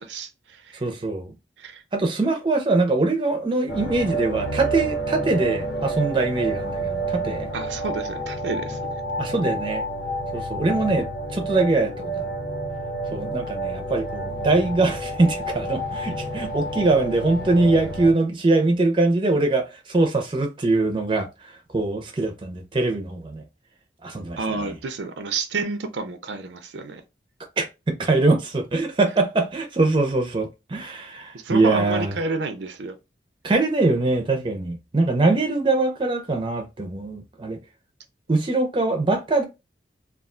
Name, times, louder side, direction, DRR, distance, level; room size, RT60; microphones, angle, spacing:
voice 1, 0.0-0.8 1.6-1.8 7.5-9.0 24.4-27.0 31.3-33.0, right 3 dB, 90° right, 0.5 m, -30 dB
voice 2, 0.7-1.3 1.9-7.5 9.2-9.8 10.3-12.3 13.1-21.3 21.7-23.4 24.0-24.7 27.6-32.1 33.4-37.6 38.3-39.5, right 2 dB, 30° right, 0.5 m, -22 dB
sound 1, 3.7-18.1, right 2 dB, 80° left, 0.8 m, -29 dB
2.4 x 2.2 x 3.6 m
head